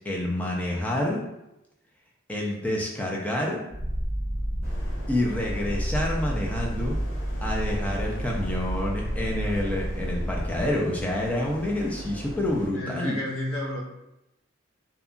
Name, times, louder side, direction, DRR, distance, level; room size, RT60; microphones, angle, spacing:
voice 1, 0.0-1.2 2.3-3.6 5.1-7.0 7.4-13.2, left 1 dB, 10° left, -3 dB, 0.4 m, -28 dB
Purr, 3.7-10.7, equal, 70° left, 1.5 m, -30 dB
sound 1, 4.6-12.7, equal, 35° left, 0.7 m, -41 dB
voice 2, 9.4-9.8 12.7-13.8, left 1 dB, 85° left, -3 dB, 0.8 m, -33 dB
2.7 x 2.3 x 2.4 m, 0.90 s
head